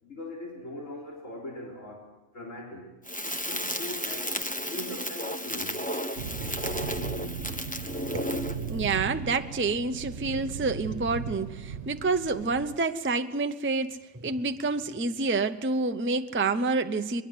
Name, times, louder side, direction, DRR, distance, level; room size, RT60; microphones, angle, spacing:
voice 1, 0.0-2.9 3.3-4.4 4.7-5.8, left 1 dB, 85° left, -2 dB, 4.5 m, -41 dB
Crackle, 3.1-8.8, equal, 5° left, 1.3 m, -33 dB
sound 1, 6.2-12.8, right 6 dB, 60° right, 1.5 m, -37 dB
voice 2, 8.7-17.2, right 3 dB, 15° right, 8 dB, 0.6 m, -28 dB
23.0 x 21.5 x 8.0 m, 1.1 s
omnidirectional pair, 1.3 m